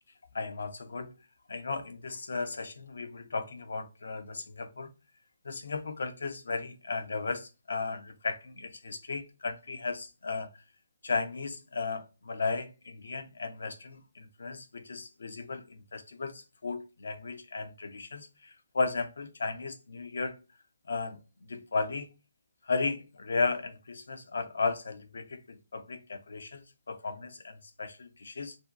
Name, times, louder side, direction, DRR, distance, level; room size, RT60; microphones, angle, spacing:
voice 1, 0.3-1.2 1.5-4.9 5.4-10.6 11.0-20.4 20.9-22.1 22.6-28.6, left 4 dB, 70° left, 0.5 m, -35 dB
2.6 x 2.1 x 3.5 m
figure-of-eight pair, 140°, 0 cm